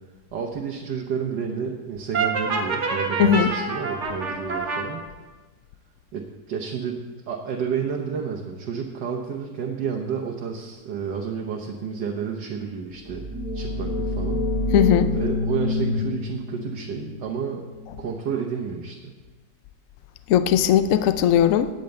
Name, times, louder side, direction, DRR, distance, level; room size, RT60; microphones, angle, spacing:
voice 1, 0.3-5.0 6.1-13.2 13.5-14.5 15.1-17.7 18.0-19.1, right 6 dB, 85° right, 0 dB, 1.7 m, -30 dB
Brass instrument, 2.1-4.9, right 4 dB, 45° right, 1.8 m, -26 dB
voice 2, 3.2-3.5 14.7-15.1 20.3-21.7, left 9 dB, 65° left, 11 dB, 0.8 m, -18 dB
sound 1, 13.0-18.6, left 2 dB, 5° right, 1.9 m, -28 dB
9.3 x 8.8 x 7.8 m, 1.3 s
omnidirectional pair, 1.9 m